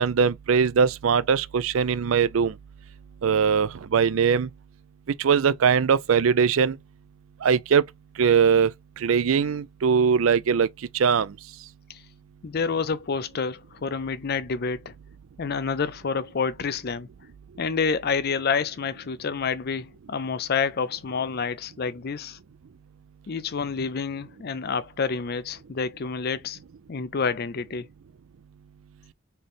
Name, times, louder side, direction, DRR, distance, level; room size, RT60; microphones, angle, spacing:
voice 1, 0.0-2.5 3.2-4.5 5.1-6.8 7.4-7.8 8.2-8.7 9.0-10.7 10.9-11.3, right 6 dB, 70° right, 0.4 m, -21 dB
voice 2, 12.4-14.9 15.4-17.1 17.6-22.4 23.3-26.6 26.9-27.9, left 5 dB, 45° left, 0.5 m, -28 dB
4.2 x 3.2 x 3.5 m
head